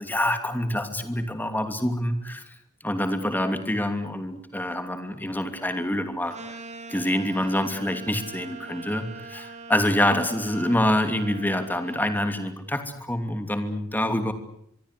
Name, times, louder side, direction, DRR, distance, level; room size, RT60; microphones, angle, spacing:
voice 1, 0.0-2.5 2.8-6.4 6.9-14.3, left 1 dB, 10° left, 7 dB, 2.8 m, -26 dB
sound 1, 6.3-12.1, right 3 dB, 30° right, 4.0 m, -42 dB
25.5 x 23.0 x 8.4 m, 0.69 s
head